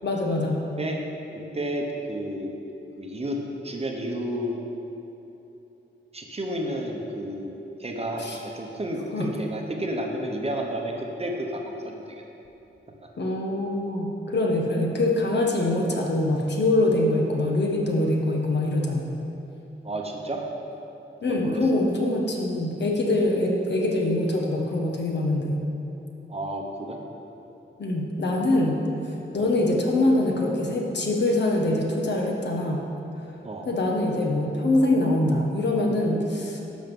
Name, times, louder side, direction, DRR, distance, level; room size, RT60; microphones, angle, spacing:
voice 1, 0.0-0.7 8.2-8.4 9.1-9.3 13.2-19.1 21.2-25.6 27.8-28.9 29.3-32.9 33.6-36.6, left 1 dB, 55° left, 0 dB, 1.4 m, -24 dB
voice 2, 1.5-2.5 3.0-3.4 3.6-4.6 6.1-7.5 7.8-12.2 19.8-20.4 21.3-21.6 26.3-27.0 29.4-29.5 33.4-33.7, right 1 dB, 30° right, 1 dB, 1.0 m, -31 dB
11.5 x 6.4 x 5.5 m, 3.0 s
wide cardioid pair, 140°, 21 cm